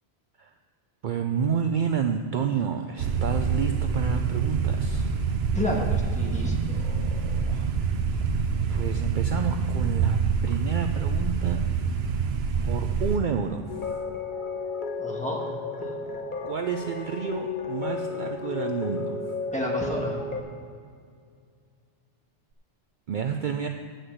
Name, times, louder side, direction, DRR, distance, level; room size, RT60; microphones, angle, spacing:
voice 1, 1.0-5.1 8.7-11.6 12.6-14.0 16.4-19.3 23.1-23.7, right 7 dB, 60° right, 5 dB, 0.6 m, -29 dB
sound 1, 3.0-13.2, right 5 dB, 80° right, 0.9 m, -26 dB
voice 2, 5.5-7.7 15.0-15.4 15.8-16.2 19.5-20.4, left 1 dB, 5° left, -3 dB, 1.5 m, -32 dB
sound 2, 13.7-20.4, left 4 dB, 55° left, 1.1 m, -33 dB
7.8 x 6.3 x 7.9 m, 2.1 s
omnidirectional pair, 1.1 m